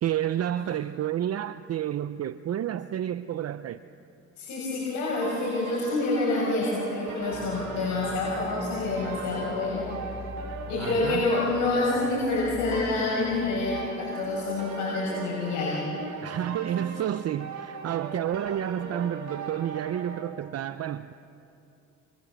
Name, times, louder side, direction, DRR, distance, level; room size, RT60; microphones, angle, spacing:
voice 1, 0.0-3.8 10.8-11.3 16.2-21.1, right 10 dB, 55° right, 12 dB, 0.7 m, -30 dB
voice 2, 4.4-10.0 10.7-15.9, left 3 dB, 90° left, -6 dB, 6.4 m, -27 dB
sound 1, 5.2-20.2, right 4 dB, 70° right, 3.9 m, -39 dB
sound 2, 7.3-13.7, left 2 dB, 20° left, 2.9 m, -44 dB
29.0 x 25.0 x 7.5 m, 2.8 s
cardioid pair, 90°, 30 cm